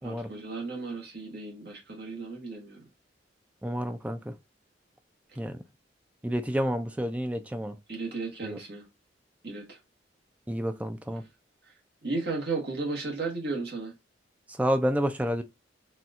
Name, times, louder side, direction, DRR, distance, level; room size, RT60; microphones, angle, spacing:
voice 1, 0.0-2.8 7.9-8.8 9.4-9.8 12.0-13.9, right 3 dB, 55° right, 1.1 m, -34 dB
voice 2, 3.6-4.3 5.4-5.6 6.2-7.8 8.4-8.6 10.5-11.2 14.5-15.4, equal, 5° right, 0.3 m, -29 dB
4.2 x 2.3 x 2.4 m
head